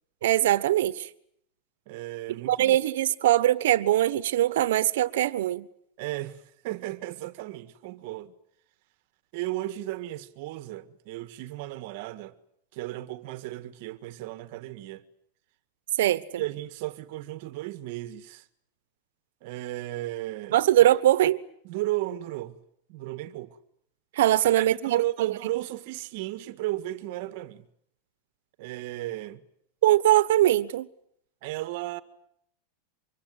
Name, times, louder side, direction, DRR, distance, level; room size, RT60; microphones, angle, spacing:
voice 1, 0.2-1.1 2.4-5.7 16.0-16.4 20.5-21.4 24.1-25.3 29.8-30.9, right 13 dB, 70° right, 1.3 m, -22 dB
voice 2, 1.9-2.8 6.0-8.4 9.3-12.3 12.7-15.0 16.4-18.5 19.4-21.0 21.6-22.6 22.9-23.6 24.6-27.7 28.6-29.4 31.4-32.0, right 16 dB, 45° right, 1.7 m, -34 dB
25.0 x 23.0 x 9.7 m
supercardioid pair, 180°, 0 cm